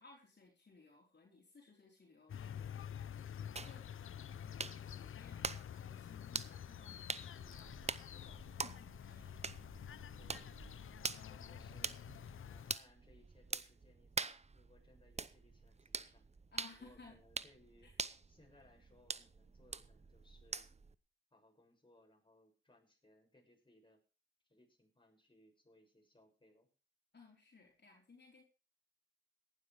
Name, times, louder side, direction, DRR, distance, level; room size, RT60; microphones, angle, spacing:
voice 1, 0.0-2.8 3.1-3.9 4.4-9.4 16.5-17.2 17.8-17.9 27.1-28.4, left 4 dB, 55° left, -1 dB, 4.3 m, -61 dB
sound 1, 2.3-12.8, left 9 dB, 80° left, 0.6 m, -49 dB
sound 2, 3.6-20.9, right 4 dB, 30° right, 0.8 m, -46 dB
voice 2, 11.1-12.0 12.5-16.3 16.8-17.9 18.3-20.7 21.3-24.0 24.4-26.7, left 1 dB, 25° left, 1 dB, 6.6 m, -67 dB
17.5 x 12.0 x 3.5 m, 0.34 s
cardioid pair, 55°, 21 cm